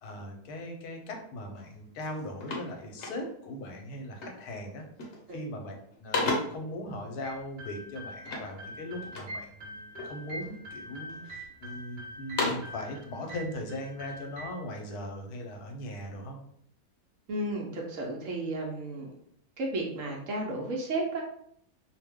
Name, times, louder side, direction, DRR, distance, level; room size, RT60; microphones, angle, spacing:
voice 1, 0.0-4.9 5.3-16.4, left 1 dB, 85° left, 3 dB, 1.1 m, -39 dB
sound 1, 1.6-1.7 2.0-3.6 4.2-4.5 4.8-5.3 5.7-6.7 8.2-9.4 9.9-10.6 11.1-11.8 12.1-12.8, left 2 dB, 55° left, 0.9 m, -35 dB
sound 2, 7.2-14.5, equal, 85° right, 1.2 m, -44 dB
voice 2, 17.3-19.1 19.6-21.2, right 2 dB, 65° right, -1 dB, 0.9 m, -33 dB
2.6 x 2.1 x 3.5 m, 0.68 s
omnidirectional pair, 1.6 m